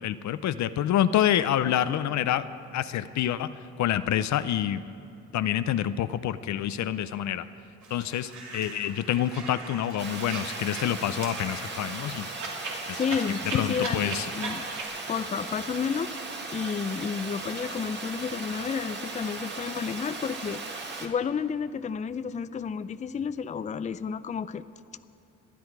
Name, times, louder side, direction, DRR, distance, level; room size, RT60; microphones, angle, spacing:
voice 1, 0.0-2.5 2.7-3.5 3.8-4.8 5.3-7.4 7.9-12.3 12.9-13.0 13.5-14.3, left 11 dB, 70° left, 13 dB, 0.6 m, -27 dB
sound 1, 7.8-14.8, right 3 dB, 70° right, 2.9 m, -39 dB
Water, 10.0-21.1, right 3 dB, 35° right, 2.0 m, -37 dB
voice 2, 12.9-14.7 15.1-16.1 16.5-20.6 21.0-24.6, left 6 dB, 25° left, 13 dB, 0.5 m, -31 dB
27.0 x 10.5 x 4.7 m, 2.7 s
cardioid pair, 90°, 30 cm